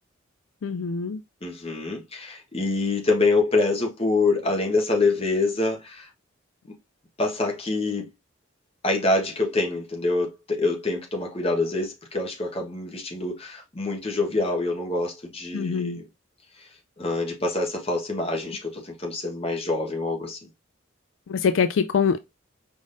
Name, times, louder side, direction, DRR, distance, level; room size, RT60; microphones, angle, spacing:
voice 1, 0.6-1.2 15.5-16.0 21.3-22.2, left 6 dB, 75° left, 0.3 m, -24 dB
voice 2, 1.4-6.1 7.2-8.1 8.8-16.1 16.6-16.7 17.0-20.4, left 2 dB, 30° left, 1.3 m, -25 dB
4.9 x 3.7 x 2.6 m
head